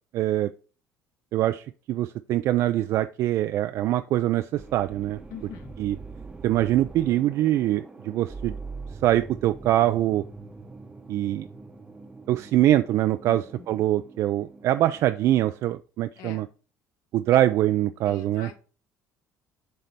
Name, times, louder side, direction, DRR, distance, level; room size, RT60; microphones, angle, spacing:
voice 1, 0.1-0.5 1.3-5.2 5.8-6.0 6.4-8.5 9.0-10.2 11.1-11.5 12.3-16.5 17.1-18.5, right 13 dB, 55° right, 0.3 m, -23 dB
sound 1, 4.5-15.0, right 4 dB, 15° right, 0.8 m, -43 dB
voice 2, 5.3-5.7 13.3-13.4 16.1-16.4 17.3-17.4 18.0-18.6, left 8 dB, 75° left, 1.5 m, -42 dB
7.6 x 3.4 x 4.2 m
cardioid pair, 145°, 6 cm